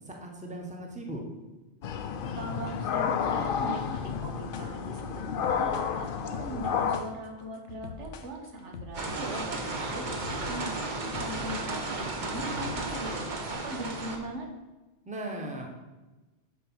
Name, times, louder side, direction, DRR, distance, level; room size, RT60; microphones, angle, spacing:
voice 1, 0.1-1.2 15.1-15.7, right 1 dB, 5° right, 1 dB, 1.0 m, -38 dB
sound 1, 1.8-7.0, left 7 dB, 60° left, 0.7 m, -31 dB
voice 2, 2.3-10.1 10.5-10.7 11.1-14.5, right 1 dB, 80° right, 2 dB, 1.5 m, -40 dB
sound 2, 3.9-13.5, left 4 dB, 75° left, 1.0 m, -45 dB
sound 3, 8.9-14.2, right 2 dB, 45° right, 1.1 m, -34 dB
7.4 x 4.8 x 6.2 m, 1.1 s
omnidirectional pair, 1.2 m